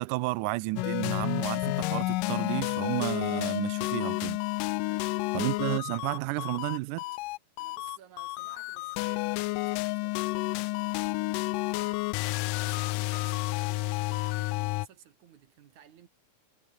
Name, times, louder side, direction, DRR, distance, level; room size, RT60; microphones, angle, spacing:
voice 1, 0.0-4.4 5.3-7.0, right 21 dB, 85° right, 1.8 m, -32 dB
sound 1, 0.8-14.9, left 21 dB, 80° left, 1.9 m, -30 dB
voice 2, 4.8-5.5 7.6-16.1, right 9 dB, 60° right, 2.7 m, -56 dB
omnidirectional pair, 4.2 m